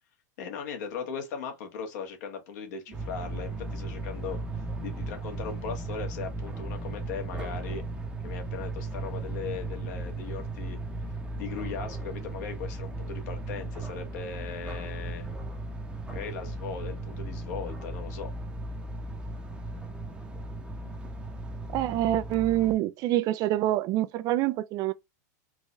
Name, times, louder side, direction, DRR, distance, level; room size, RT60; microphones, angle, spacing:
voice 1, 0.4-7.8 8.2-10.8 11.3-15.3 16.1-18.3, left 6 dB, 65° left, 1.4 m, -38 dB
sound 1, 2.9-22.7, right 2 dB, 10° right, 0.8 m, -36 dB
voice 2, 21.7-24.9, right 14 dB, 40° right, 0.3 m, -26 dB
3.8 x 2.6 x 3.0 m
hypercardioid pair, 125°, 10 cm